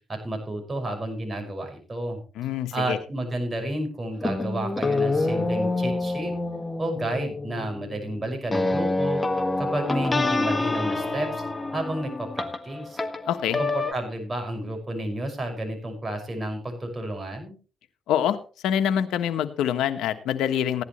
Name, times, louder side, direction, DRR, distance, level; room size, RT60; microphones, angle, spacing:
voice 1, 0.1-2.2 2.7-6.3 6.8-9.2 9.6-11.4 11.7-13.0 13.6-17.6, right 1 dB, 25° right, 4 dB, 5.8 m, -31 dB
voice 2, 2.4-3.0 13.3-13.6 18.1-18.4 18.6-20.8, left 9 dB, 85° left, 9 dB, 1.3 m, -25 dB
sound 1, 4.2-13.9, left 2 dB, 15° left, 1.7 m, -27 dB
16.0 x 11.0 x 3.2 m, 0.36 s
cardioid pair, 90°, 0 cm